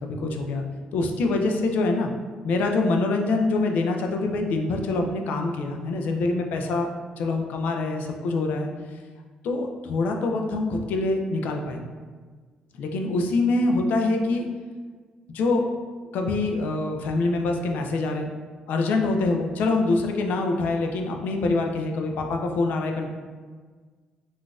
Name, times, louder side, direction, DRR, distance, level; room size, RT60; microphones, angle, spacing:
voice 1, 0.0-0.7 0.9-2.1 2.4-6.9 7.2-8.7 9.4-11.8 12.8-14.5 15.3-15.7 16.1-18.3 18.7-23.1, left 3 dB, 75° left, 3 dB, 0.4 m, -25 dB
3.7 x 2.4 x 2.4 m, 1.5 s
cardioid pair, 95°, 3 cm